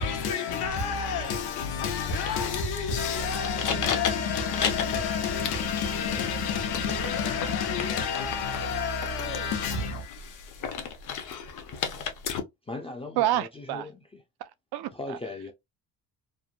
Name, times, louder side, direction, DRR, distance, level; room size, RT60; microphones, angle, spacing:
voice 1, 0.0-10.7, left 6 dB, 80° left, 0.9 m, -29 dB
sound 1, 0.6-12.4, left 6 dB, 50° left, 0.7 m, -35 dB
voice 2, 12.6-14.2 14.9-15.5, left 2 dB, 15° left, 0.4 m, -38 dB
voice 3, 13.2-13.9 14.4-15.2, right 13 dB, 75° right, 0.5 m, -29 dB
3.2 x 2.1 x 2.4 m
cardioid pair, 120°, 39 cm